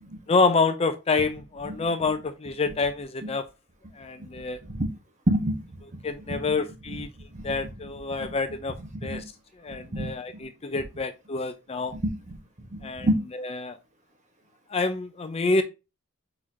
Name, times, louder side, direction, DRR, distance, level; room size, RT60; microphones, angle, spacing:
voice 1, 0.3-3.5 4.0-4.6 6.0-7.1 7.4-9.2 9.6-11.9 12.8-13.1 13.3-13.8 14.7-15.6, left 3 dB, 30° left, 0.4 m, -27 dB
voice 2, 4.2-4.9 5.3-6.0 6.3-6.6 7.3-7.7 8.2-8.3 8.9-9.2 9.9-10.5 11.9-12.4 12.7-13.2, right 1 dB, 35° right, 1.3 m, -29 dB
4.4 x 4.2 x 2.8 m
head